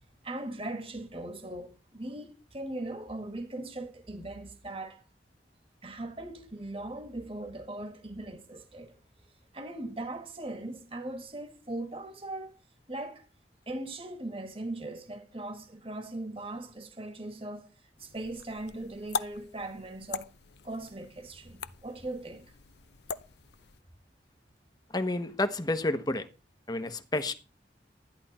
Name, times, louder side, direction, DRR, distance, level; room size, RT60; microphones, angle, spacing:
voice 1, 0.2-5.0 5.8-9.0 9.5-12.6 12.9-13.3 13.7-17.7 18.0-20.3 20.6-22.5, right 2 dB, 30° right, 1.9 m, -39 dB
sound 1, 18.0-23.8, left 5 dB, 70° left, 0.7 m, -41 dB
voice 2, 24.9-26.3 26.7-27.3, left 2 dB, 25° left, 1.1 m, -30 dB
13.5 x 10.5 x 4.3 m
head